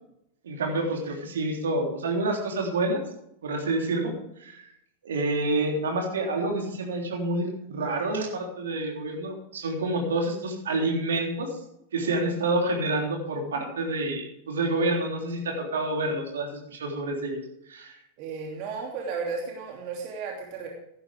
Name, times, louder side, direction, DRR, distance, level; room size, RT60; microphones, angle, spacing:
voice 1, 0.4-3.0 3.4-4.1 4.4-4.6 5.0-11.6 11.9-17.4 17.7-17.9, right 2 dB, 65° right, 1 dB, 3.5 m, -28 dB
voice 2, 18.2-20.7, right 5 dB, 45° right, -1 dB, 2.8 m, -34 dB
15.5 x 11.5 x 3.5 m, 0.77 s
figure-of-eight pair, 90°, 0 cm